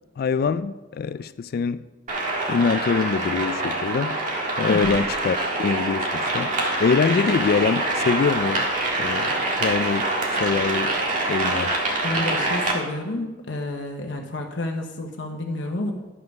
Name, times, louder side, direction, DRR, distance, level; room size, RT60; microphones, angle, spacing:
voice 1, 0.2-1.9 2.5-4.2 4.6-6.5 6.8-8.7 9.0-10.9 11.3-11.8, left 5 dB, 50° left, 0.3 m, -24 dB
sound 1, 2.1-12.7, right 2 dB, 45° right, 1.7 m, -25 dB
voice 2, 4.7-5.0 12.0-15.9, left 1 dB, 75° left, 1.0 m, -29 dB
11.0 x 5.3 x 6.0 m
head